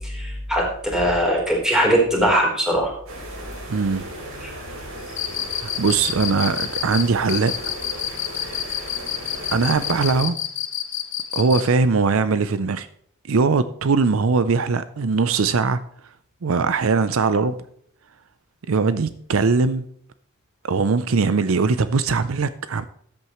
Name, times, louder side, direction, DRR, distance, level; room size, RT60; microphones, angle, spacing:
voice 1, 0.0-2.9 4.4-4.5, equal, 5° right, 3.8 m, -21 dB
sound 1, 3.1-10.2, right 1 dB, 90° right, 3.8 m, -36 dB
voice 2, 3.7-4.0 5.6-7.8 8.3-8.7 9.5-10.4 11.3-12.9 13.3-15.8 16.4-17.5 18.7-19.8 20.6-22.8, right 4 dB, 70° right, 0.6 m, -21 dB
Cricket, 5.1-11.7, left 11 dB, 60° left, 1.1 m, -27 dB
13.5 x 8.7 x 3.1 m
head